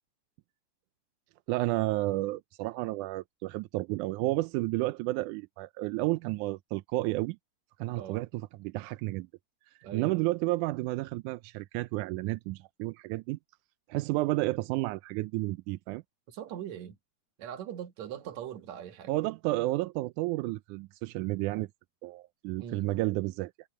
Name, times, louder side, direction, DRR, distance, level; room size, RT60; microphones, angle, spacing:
voice 1, 1.5-7.4 7.8-9.3 9.9-13.4 13.9-16.0 19.1-21.7 22.0-23.5, right 19 dB, 90° right, 2.1 m, -31 dB
voice 2, 9.8-10.2 16.3-17.0 17.4-19.1 22.6-22.9, right 10 dB, 70° right, 2.7 m, -41 dB
omnidirectional pair, 3.4 m